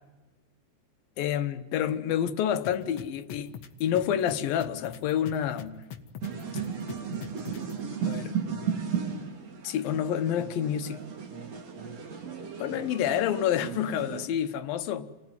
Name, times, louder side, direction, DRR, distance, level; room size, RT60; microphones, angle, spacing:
voice 1, 1.2-3.5 3.8-5.9 8.1-8.3 9.6-11.0 12.6-15.1, left 10 dB, 80° left, 2.8 m, -28 dB
sound 1, 2.6-7.7, left 9 dB, 55° left, 2.1 m, -41 dB
sound 2, 6.2-14.3, right 6 dB, 50° right, 3.1 m, -35 dB
29.0 x 19.5 x 9.8 m
omnidirectional pair, 4.1 m